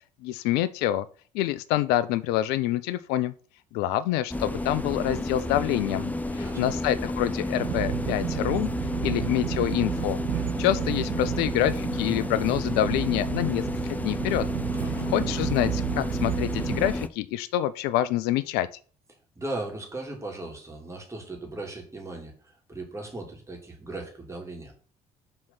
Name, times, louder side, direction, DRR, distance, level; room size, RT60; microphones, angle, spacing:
voice 1, 0.2-1.1 1.3-3.3 3.7-8.7 9.0-10.2 10.6-14.4 15.1-18.7, left 13 dB, 60° left, 15 dB, 0.4 m, -26 dB
sound 1, 4.3-17.1, left 1 dB, 10° left, 0.7 m, -31 dB
voice 2, 6.3-6.7 14.7-15.1 19.4-24.7, right 2 dB, 15° right, 0 dB, 3.0 m, -38 dB
sound 2, 7.5-16.9, right 14 dB, 50° right, 0.5 m, -32 dB
6.3 x 4.4 x 5.9 m, 0.42 s
figure-of-eight pair, 50°, 19 cm